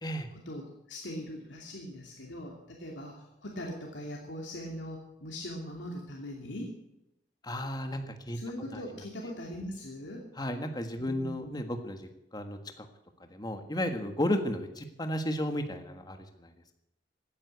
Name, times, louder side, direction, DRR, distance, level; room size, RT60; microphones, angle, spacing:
voice 1, 0.3-6.7 8.3-10.3 10.9-11.6, equal, 80° left, -1 dB, 2.7 m, -41 dB
voice 2, 7.4-8.4 8.7-8.8 10.4-12.8 13.3-16.5, left 1 dB, 25° left, 6 dB, 1.6 m, -33 dB
16.5 x 9.8 x 8.2 m, 0.85 s
head